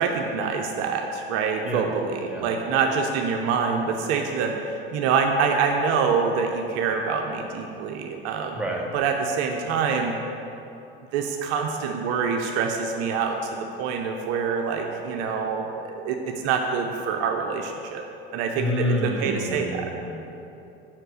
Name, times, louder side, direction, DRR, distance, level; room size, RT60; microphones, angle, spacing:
voice 1, 0.0-8.6 8.9-10.1 11.1-18.0 18.3-19.9, right 5 dB, 55° right, 3 dB, 0.7 m, -26 dB
voice 2, 8.5-8.9 18.5-20.3, left 1 dB, 5° right, -2 dB, 1.1 m, -28 dB
5.7 x 4.4 x 6.2 m, 2.8 s
hypercardioid pair, 75°, 30 cm